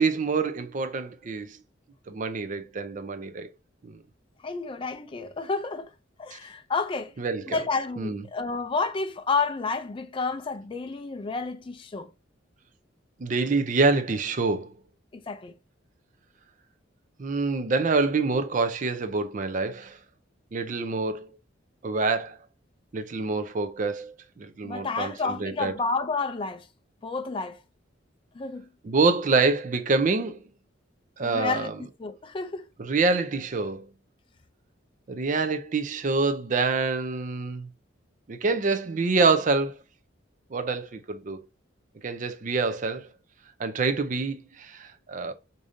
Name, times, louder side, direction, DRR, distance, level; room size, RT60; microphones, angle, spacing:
voice 1, 0.0-1.6 2.1-3.5 3.8-4.0 6.3-6.4 7.2-7.6 8.0-8.2 13.2-14.7 17.2-20.0 20.5-21.3 21.8-22.4 22.9-25.7 28.8-30.4 31.2-31.8 32.8-33.9 35.1-37.7 38.3-39.7 40.5-41.4 42.0-43.1 43.6-45.3, right 4 dB, 40° right, 0.5 m, -26 dB
voice 2, 4.4-5.9 6.2-7.1 7.5-12.1 15.1-15.5 24.6-26.7 27.0-27.6 28.3-28.7 31.2-31.7 32.0-32.7, left 4 dB, 25° left, 0.4 m, -30 dB
4.9 x 2.7 x 2.5 m
head